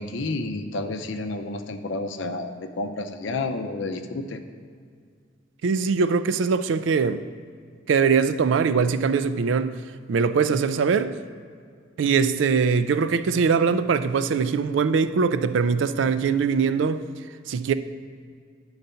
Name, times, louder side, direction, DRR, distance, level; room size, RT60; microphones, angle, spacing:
voice 1, 0.0-4.4, left 2 dB, 75° left, 0.6 m, -30 dB
voice 2, 5.6-7.2 7.9-11.2 12.0-17.7, right 5 dB, 75° right, 0.3 m, -22 dB
10.0 x 4.0 x 5.6 m
head